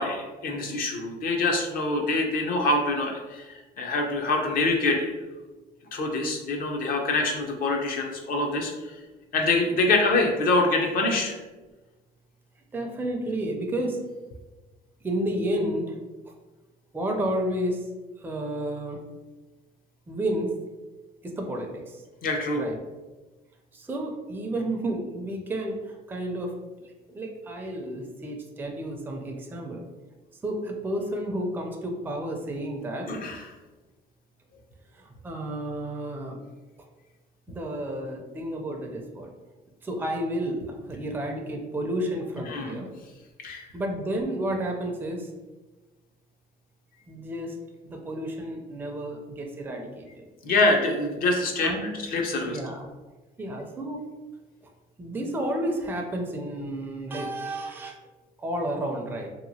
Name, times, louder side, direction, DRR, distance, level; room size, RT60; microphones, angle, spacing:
voice 1, 0.0-5.2 5.9-8.9 9.3-11.4 22.2-22.6 33.1-33.4 42.5-42.8 43.4-43.7 50.4-51.7 52.1-52.6, left 2 dB, 60° left, 2 dB, 0.6 m, -25 dB
voice 2, 12.7-14.0 15.0-16.0 16.9-17.8 18.2-19.0 20.1-20.5 21.2-22.0 22.5-22.8 23.7-26.5 27.1-29.8 30.4-33.1 34.9-36.4 37.5-39.3 39.8-42.9 43.7-45.3 47.1-47.5 47.9-50.3 51.6-52.0 52.5-52.8 53.4-54.0 55.0-58.0 58.4-59.3, right 1 dB, 10° right, 1 dB, 0.4 m, -31 dB
2.9 x 2.4 x 2.7 m, 1.2 s
cardioid pair, 110°, 17 cm